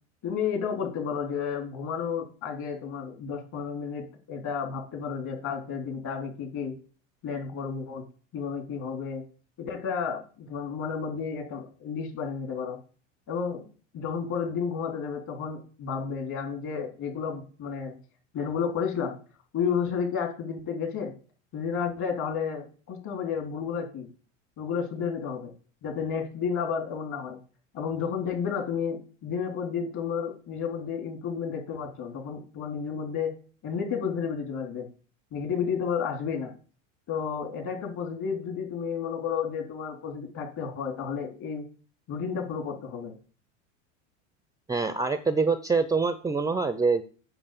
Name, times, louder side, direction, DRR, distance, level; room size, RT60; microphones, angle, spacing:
voice 1, 0.2-6.7 7.2-8.0 8.3-9.2 9.6-12.8 13.3-13.7 13.9-18.0 18.3-19.2 19.5-21.1 21.5-24.1 24.6-25.5 25.8-27.4 27.7-33.3 33.6-34.9 35.3-36.5 37.1-41.7 42.1-43.1, left 6 dB, 50° left, 4 dB, 3.7 m, -31 dB
voice 2, 44.7-47.0, right 4 dB, 10° right, 12 dB, 0.6 m, -25 dB
7.9 x 6.4 x 6.8 m, 0.39 s
hypercardioid pair, 100°, 37 cm